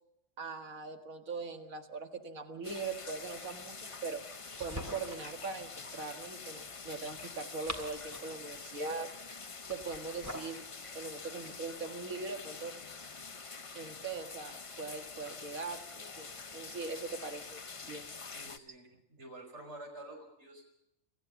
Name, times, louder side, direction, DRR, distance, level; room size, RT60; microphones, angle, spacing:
voice 1, 0.4-4.2 4.6-9.1 9.7-10.6 10.9-12.7 13.7-18.1, right 4 dB, 80° right, 5 dB, 2.2 m, -41 dB
sound 1, 2.6-18.6, left 4 dB, 30° left, 0.7 m, -46 dB
sound 2, 4.3-5.3 7.3-8.4 9.7-10.6, equal, 10° right, 2.9 m, -44 dB
voice 2, 18.3-20.6, right 1 dB, 55° right, 2 dB, 6.0 m, -49 dB
27.0 x 15.0 x 7.1 m, 0.81 s
omnidirectional pair, 1.4 m